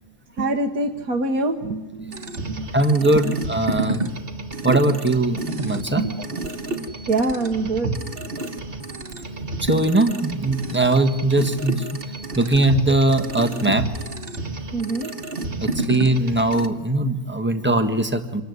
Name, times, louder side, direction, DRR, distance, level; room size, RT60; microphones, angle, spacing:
voice 1, 0.4-2.7 3.2-3.3 6.0-6.3 7.1-7.9 14.7-15.1, right 2 dB, 60° right, 2 dB, 1.7 m, -25 dB
sound 1, 2.1-16.7, right 2 dB, 35° right, 1.7 m, -30 dB
voice 2, 2.7-4.1 4.6-6.0 9.6-12.0 12.3-13.9 15.6-18.4, right 2 dB, 5° right, 6 dB, 1.4 m, -20 dB
26.5 x 21.0 x 9.6 m, 1.1 s
omnidirectional pair, 1.7 m